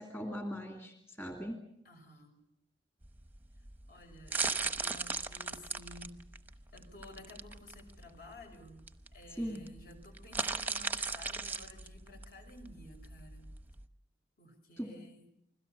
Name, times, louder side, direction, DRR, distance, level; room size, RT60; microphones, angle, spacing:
voice 1, 0.0-1.6 9.4-9.6 14.8-14.9, equal, 15° left, 3 dB, 2.6 m, -39 dB
voice 2, 1.8-2.4 3.9-6.3 6.7-8.8 9.1-13.5 14.4-15.3, left 1 dB, 50° left, 5 dB, 5.8 m, -53 dB
sound 1, 3.0-13.9, right 4 dB, 10° right, 1.0 m, -38 dB
29.5 x 21.5 x 6.9 m, 0.77 s
head